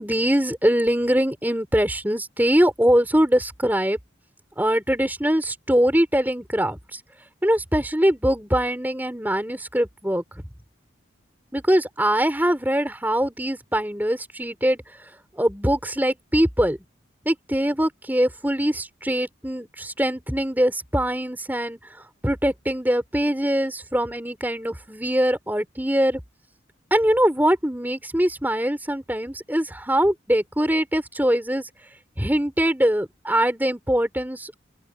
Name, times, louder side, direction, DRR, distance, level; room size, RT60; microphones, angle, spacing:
voice 1, 0.0-4.0 4.6-7.0 7.4-10.2 11.5-14.8 15.4-16.8 17.3-21.8 22.2-26.2 26.9-31.7 32.2-34.6, equal, 10° right, 4.1 m, -22 dB
open air
head